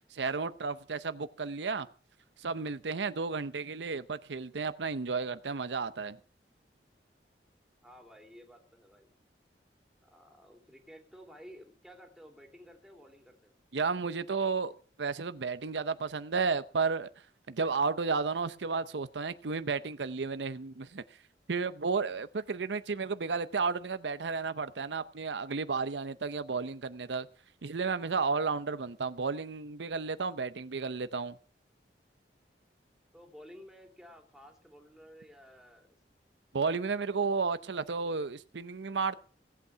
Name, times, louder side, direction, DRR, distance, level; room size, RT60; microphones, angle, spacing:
voice 1, 0.1-1.9 2.4-6.2 13.7-14.7 15.0-17.1 17.5-21.0 21.5-27.3 27.6-31.4 36.5-39.2, right 4 dB, 90° right, 0.7 m, -32 dB
voice 2, 7.8-9.1 10.0-13.5 33.1-35.9 37.1-37.3, equal, ahead, 2.7 m, -53 dB
17.5 x 8.4 x 5.7 m
head